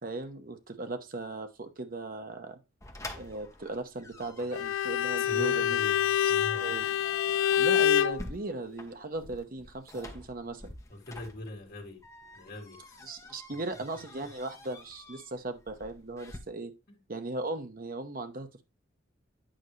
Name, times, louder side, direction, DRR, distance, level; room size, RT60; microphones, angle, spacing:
voice 1, 0.0-2.6 3.1-5.8 6.5-6.9 7.6-10.7 13.0-16.7 17.1-18.6, right 2 dB, 45° right, 0.9 m, -38 dB
sound 1, 2.8-16.4, left 1 dB, 15° left, 1.0 m, -48 dB
Bowed string instrument, 4.5-8.2, left 9 dB, 80° left, 0.3 m, -26 dB
voice 2, 5.2-6.8 10.9-12.0 12.3-13.0 16.9-17.0, left 2 dB, 50° left, 1.9 m, -42 dB
9.0 x 5.4 x 3.1 m
head